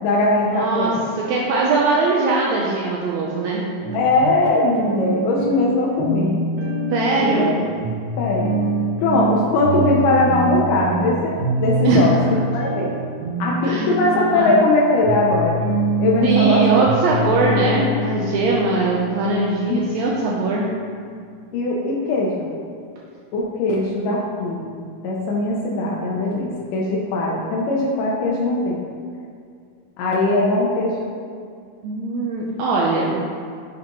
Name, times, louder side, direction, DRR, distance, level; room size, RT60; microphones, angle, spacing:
voice 1, 0.0-1.0 3.9-6.4 7.2-7.5 8.2-8.6 9.0-12.1 12.5-12.9 13.4-15.6 16.0-16.8 19.7-19.8 21.5-22.5 23.3-28.8 30.0-31.0, left 2 dB, 75° left, -4 dB, 2.3 m, -20 dB
voice 2, 0.5-3.6 6.9-7.6 11.8-12.1 13.6-13.9 14.1-14.5 16.2-20.7 31.8-33.2, right 3 dB, 80° right, -3 dB, 1.6 m, -21 dB
sound 1, 3.8-20.1, right 2 dB, 60° right, 1.2 m, -25 dB
11.5 x 5.0 x 3.0 m, 2.2 s
omnidirectional pair, 4.0 m